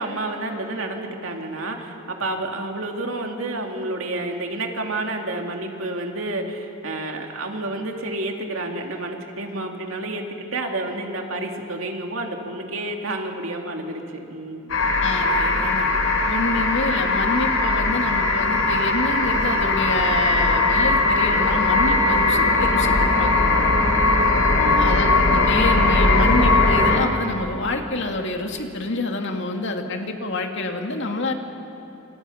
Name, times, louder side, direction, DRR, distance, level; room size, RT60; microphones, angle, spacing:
voice 1, 0.0-14.8 24.6-25.1, right 2 dB, 70° right, 2 dB, 2.8 m, -30 dB
sound 1, 14.7-27.0, left 2 dB, 80° left, 3.6 m, -19 dB
voice 2, 15.0-15.9 16.3-23.7 24.8-31.3, left 2 dB, 60° left, 3 dB, 2.3 m, -27 dB
28.5 x 27.5 x 5.8 m, 2.9 s
head